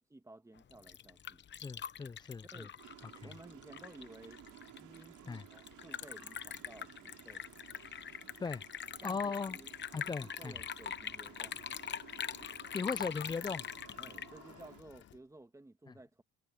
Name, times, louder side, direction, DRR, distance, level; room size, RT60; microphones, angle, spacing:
voice 1, 0.0-1.4 2.5-2.8 3.2-4.4 4.8-7.6 9.0-9.7 10.0-11.6 14.0-16.2, right 2 dB, 10° right, 1.4 m, -55 dB
Liquid, 0.6-15.1, left 8 dB, 35° left, 0.9 m, -44 dB
voice 2, 1.6-2.7 3.2-3.3 5.3-5.4 8.4-8.6 9.0-9.6 9.9-10.6 12.7-13.7 15.9-16.0, left 5 dB, 15° left, 0.3 m, -38 dB
sound 1, 2.8-14.8, right 13 dB, 70° right, 3.2 m, -56 dB
sound 2, 10.8-15.2, left 10 dB, 55° left, 2.9 m, -60 dB
cardioid pair, 120°, 32 cm